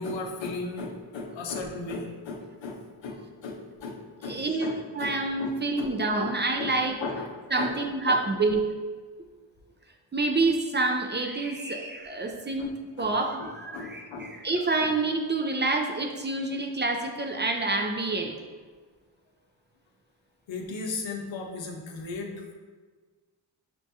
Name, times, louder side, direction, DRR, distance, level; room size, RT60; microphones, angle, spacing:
voice 1, 0.0-7.3 7.6-8.2 12.6-12.7 13.0-13.1 13.4-14.4 14.8-14.9 20.5-22.5, left 3 dB, 85° left, 2 dB, 0.7 m, -36 dB
voice 2, 4.3-6.9 7.5-8.7 10.1-18.3, right 3 dB, 25° right, 3 dB, 0.4 m, -27 dB
5.9 x 2.2 x 2.7 m, 1.4 s
cardioid pair, 55°, 45 cm